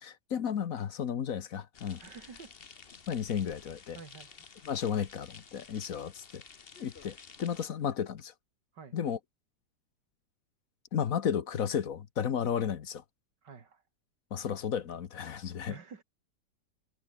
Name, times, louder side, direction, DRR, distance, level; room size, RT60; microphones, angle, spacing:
voice 1, 0.0-2.0 3.1-4.0 4.6-6.4 6.8-8.3 8.9-9.2 10.9-13.0 14.3-15.7, left 8 dB, 55° left, 1.4 m, -33 dB
sound 1, 1.7-7.7, left 5 dB, 35° left, 1.4 m, -52 dB
voice 2, 2.0-2.5 3.9-4.4 8.7-9.0 13.4-13.8 15.7-16.0, right 5 dB, 80° right, 3.0 m, -49 dB
omnidirectional pair, 1.8 m